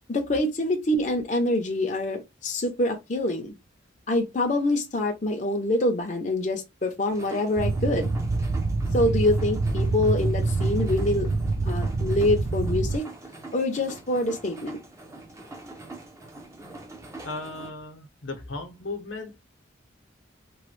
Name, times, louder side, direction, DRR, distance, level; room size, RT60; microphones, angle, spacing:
voice 1, 0.1-3.5 4.1-8.1 8.9-11.3 11.6-13.1 13.5-14.8, left 1 dB, 40° left, 0.6 m, -25 dB
sound 1, 7.1-17.7, right 2 dB, 15° right, 0.5 m, -44 dB
sound 2, 7.6-13.0, right 3 dB, 70° right, 0.5 m, -26 dB
voice 2, 17.2-19.4, left 3 dB, 75° left, 0.8 m, -36 dB
3.0 x 2.2 x 3.1 m
head